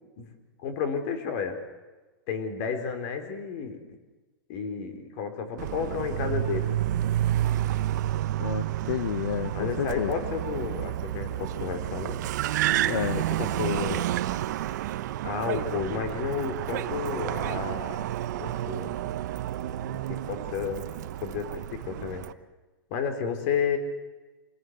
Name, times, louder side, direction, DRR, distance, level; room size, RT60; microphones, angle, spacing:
voice 1, 0.6-1.6 2.3-4.0 4.5-6.7 9.5-12.2 13.1-14.1 15.2-18.1 18.4-18.9 20.1-20.8 21.2-22.2 22.9-23.8, left 6 dB, 40° left, 7 dB, 3.9 m, -31 dB
Car, 5.6-22.3, right 13 dB, 55° right, 1.0 m, -30 dB
voice 2, 8.4-10.1 12.8-13.2, left 10 dB, 70° left, 11 dB, 1.2 m, -30 dB
27.5 x 18.5 x 8.0 m, 1.2 s
supercardioid pair, 165°, 12 cm